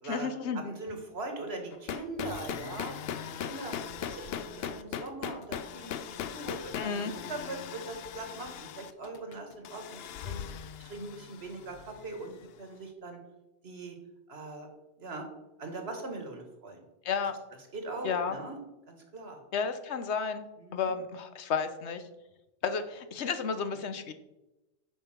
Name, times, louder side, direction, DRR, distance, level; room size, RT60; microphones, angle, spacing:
voice 1, 0.0-0.6 6.7-7.1 17.0-17.4 18.0-18.4 19.5-20.4 20.7-22.0 22.6-24.1, left 6 dB, 85° left, 10 dB, 1.1 m, -32 dB
voice 2, 0.5-2.9 3.4-3.8 4.0-10.4 10.8-13.2 13.6-14.0 14.3-14.7 15.0-15.3 15.6-16.9 17.7-18.6 18.9-19.4 20.6-20.9 23.8-23.9, right 2 dB, 70° right, 4 dB, 1.8 m, -41 dB
sound 1, 1.7-12.5, left 8 dB, 70° left, 0.8 m, -39 dB
8.9 x 5.6 x 5.8 m, 0.99 s
omnidirectional pair, 1.1 m